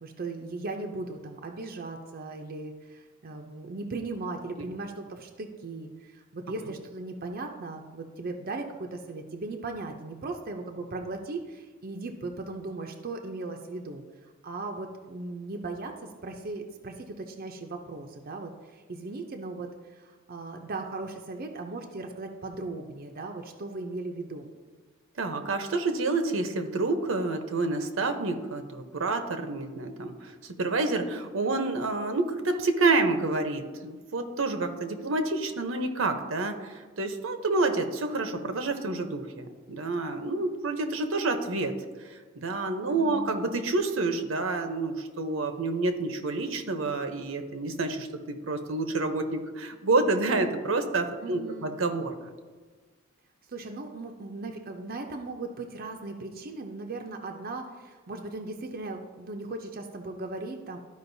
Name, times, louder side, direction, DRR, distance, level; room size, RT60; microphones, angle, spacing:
voice 1, 0.0-14.0 14.4-24.5 42.9-43.3 51.2-51.7 53.5-60.8, right 3 dB, 50° right, 3 dB, 0.6 m, -38 dB
voice 2, 25.2-30.3 30.6-41.7 42.4-52.1, right 3 dB, 80° right, 7 dB, 0.8 m, -28 dB
13.0 x 5.1 x 2.7 m, 1.5 s
head